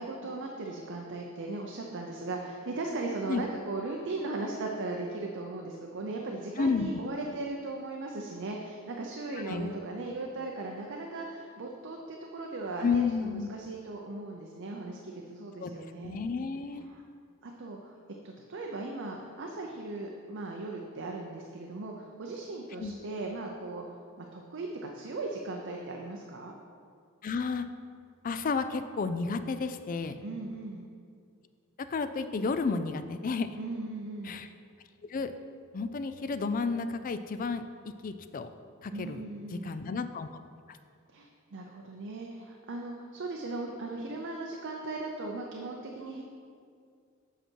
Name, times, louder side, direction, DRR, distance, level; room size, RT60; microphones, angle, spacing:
voice 1, 0.0-16.2 16.9-17.0 17.4-18.0 18.2-23.8 24.2-26.5 30.2-30.9 33.5-34.4 38.9-39.8 41.1-46.2, right 2 dB, 60° right, 1 dB, 0.6 m, -38 dB
voice 2, 6.6-6.9 9.3-9.8 12.8-13.5 15.6-15.7 16.0-16.9 22.8-22.9 27.2-27.6 28.2-30.2 31.8-33.5 34.2-34.5 35.1-35.3 35.7-37.6 38.0-38.5 38.8-39.2 39.5-40.3 40.7-40.8, left 4 dB, 40° left, 10 dB, 0.4 m, -31 dB
8.0 x 5.9 x 4.5 m, 2.2 s
head